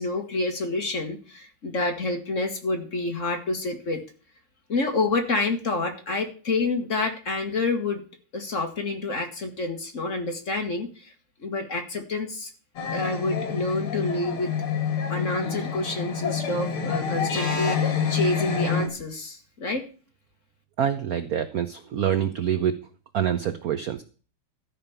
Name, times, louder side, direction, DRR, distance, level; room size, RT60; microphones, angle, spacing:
voice 1, 0.0-4.0 4.7-8.0 8.3-11.1 11.4-12.5 12.9-14.5 15.1-19.8, left 3 dB, 40° left, 5 dB, 1.6 m, -28 dB
sound 1, 12.8-18.9, left 6 dB, 80° left, 2.8 m, -28 dB
voice 2, 20.8-22.7 23.1-24.0, right 9 dB, 70° right, 10 dB, 0.9 m, -26 dB
13.0 x 5.2 x 7.0 m, 0.38 s
omnidirectional pair, 2.4 m